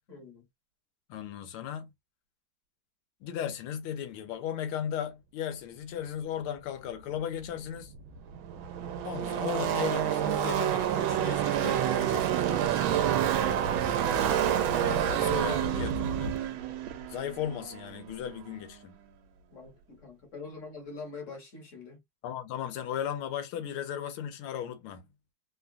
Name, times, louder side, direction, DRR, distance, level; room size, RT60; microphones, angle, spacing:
voice 1, 0.1-0.5 13.4-13.6 15.4-15.9 19.5-22.0, left 4 dB, 45° left, 1.2 m, -44 dB
voice 2, 1.1-1.9 3.2-7.9 9.0-12.7 14.8-15.9 16.2-16.3 17.1-19.0 22.2-25.0, left 9 dB, 85° left, 1.6 m, -36 dB
Car passing by / Race car auto racing, 7.6-7.7 7.8-18.4, right 10 dB, 75° right, 1.3 m, -28 dB
3.6 x 2.3 x 2.4 m
omnidirectional pair, 2.3 m